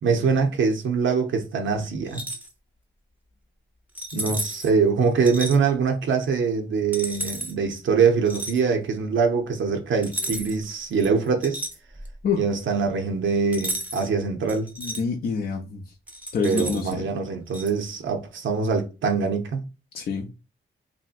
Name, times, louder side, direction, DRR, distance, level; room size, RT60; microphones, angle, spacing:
voice 1, 0.0-2.2 4.1-11.6 12.4-14.7 16.4-19.6, right 5 dB, 65° right, 0.6 m, -23 dB
sound 1, 2.0-2.5 3.9-4.7 5.2-5.6 6.9-7.5 8.3-8.6 10.0-10.6 11.0-12.2 13.5-14.1 14.5-15.0 16.1-16.9 17.5-17.7, right 1 dB, 10° right, 0.6 m, -32 dB
voice 2, 14.8-15.8 16.3-17.0 19.9-20.3, left 5 dB, 45° left, 0.4 m, -26 dB
3.0 x 2.6 x 2.4 m
wide cardioid pair, 125°, 21 cm